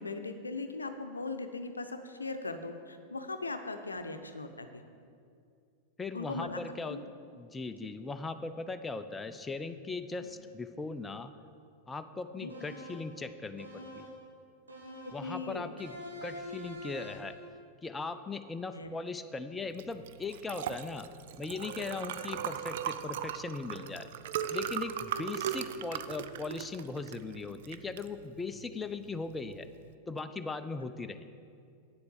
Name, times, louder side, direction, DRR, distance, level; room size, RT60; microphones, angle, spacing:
voice 1, 0.0-4.7 6.1-6.6 6.9-7.0 12.4-12.5 15.0-15.7 18.7-18.9 22.2-22.3 25.1-25.2, left 3 dB, 80° left, 8 dB, 0.7 m, -39 dB
voice 2, 6.0-7.0 7.4-11.3 11.9-14.1 15.1-15.9 16.2-17.4 17.8-21.1 21.4-24.1 24.5-29.7 30.1-31.2, left 3 dB, 15° left, 9 dB, 0.5 m, -39 dB
sound 1, 12.5-13.2 13.6-14.2 14.7-15.3 15.8-17.4, equal, 80° right, 1.8 m, -45 dB
Liquid, 19.7-29.9, right 9 dB, 55° right, 0.4 m, -38 dB
8.6 x 7.8 x 7.4 m, 2.4 s
figure-of-eight pair, 90°, 0 cm